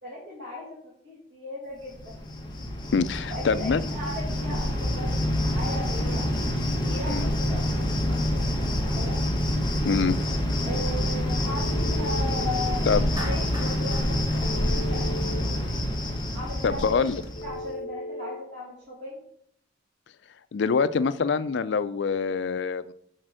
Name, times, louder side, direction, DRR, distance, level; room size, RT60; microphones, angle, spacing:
voice 1, 0.0-2.2 3.3-5.1 5.4-6.3 6.7-9.2 10.6-12.9 13.2-15.9 16.3-17.1 17.4-19.2, left 1 dB, 70° right, -7 dB, 2.3 m, -37 dB
Cricket, 1.9-17.6, left 1 dB, 25° left, 1.2 m, -27 dB
voice 2, 2.9-3.8 7.1-7.3 9.8-10.2 12.9-13.1 16.6-17.2 20.5-22.9, left 5 dB, 65° left, 14 dB, 0.4 m, -25 dB
Telephone, 11.5-12.5 14.4-15.4 17.4-18.4, left 1 dB, 45° left, 1.7 m, -37 dB
Clapping, 13.2-15.5, equal, 20° right, 1.7 m, -41 dB
6.5 x 4.3 x 6.1 m, 0.69 s
head